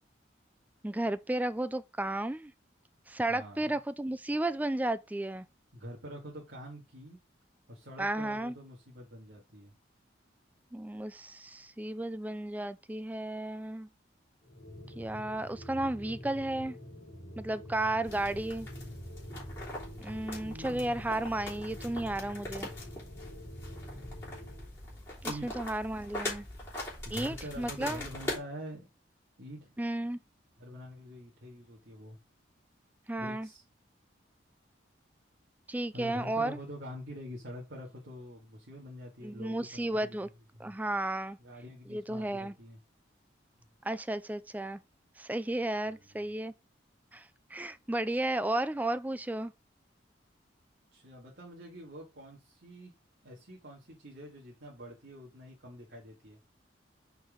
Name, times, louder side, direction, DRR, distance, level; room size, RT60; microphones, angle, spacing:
voice 1, 0.8-2.5 3.1-5.5 8.0-8.5 10.7-13.9 15.0-16.8 17.4-18.7 20.0-22.7 25.2-26.5 27.1-28.0 29.8-30.2 33.1-33.5 35.7-36.6 39.2-40.3 40.6-41.4 41.9-42.5 43.8-44.8 45.2-46.5 47.1-49.5, right 1 dB, 10° right, 0.3 m, -33 dB
voice 2, 3.3-3.7 5.7-7.2 7.7-9.7 17.9-18.3 20.4-20.9 25.3-25.6 27.0-28.9 29.4-29.8 30.6-32.2 33.2-33.6 35.9-40.2 40.5-40.7 41.4-42.8 45.9-46.2 50.9-52.9 53.2-56.4, equal, 70° right, 2.0 m, -46 dB
sound 1, 14.4-24.7, left 1 dB, 60° left, 2.8 m, -46 dB
sound 2, 18.0-28.4, left 1 dB, 15° left, 3.3 m, -42 dB
5.6 x 4.6 x 5.0 m
head